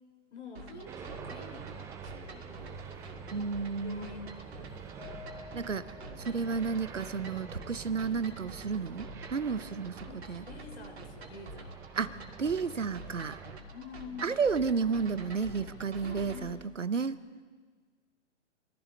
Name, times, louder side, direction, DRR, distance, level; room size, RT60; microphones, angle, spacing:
voice 1, 0.3-3.0 3.8-4.8 10.0-11.7 13.7-14.4 16.0-16.6, left 4 dB, 65° left, 3 dB, 3.4 m, -48 dB
sound 1, 0.6-16.4, right 1 dB, 60° right, 2.6 m, -47 dB
sound 2, 0.9-13.6, right 7 dB, 10° right, 0.5 m, -47 dB
voice 2, 3.3-4.1 5.5-5.8 6.2-10.4 11.9-13.4 14.2-17.2, right 5 dB, 85° right, 15 dB, 0.9 m, -32 dB
Mallet percussion, 5.0-7.3, left 8 dB, 80° left, 2.0 m, -52 dB
27.5 x 16.0 x 3.2 m, 1.5 s
figure-of-eight pair, 115°, 36 cm